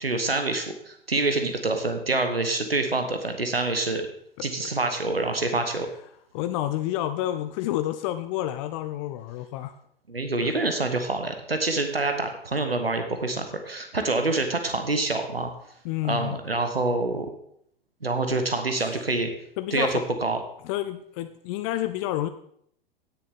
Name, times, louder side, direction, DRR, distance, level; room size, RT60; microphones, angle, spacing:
voice 1, 0.0-4.0 4.4-5.9 10.1-15.5 16.1-17.3 18.0-19.3 19.7-20.4, right 2 dB, 85° right, 5 dB, 1.2 m, -26 dB
voice 2, 6.3-9.8 10.4-10.5 15.8-16.4 19.6-20.0 20.6-22.3, left 13 dB, 35° left, 10 dB, 0.5 m, -29 dB
17.5 x 6.8 x 3.6 m, 0.69 s
figure-of-eight pair, 95°, 29 cm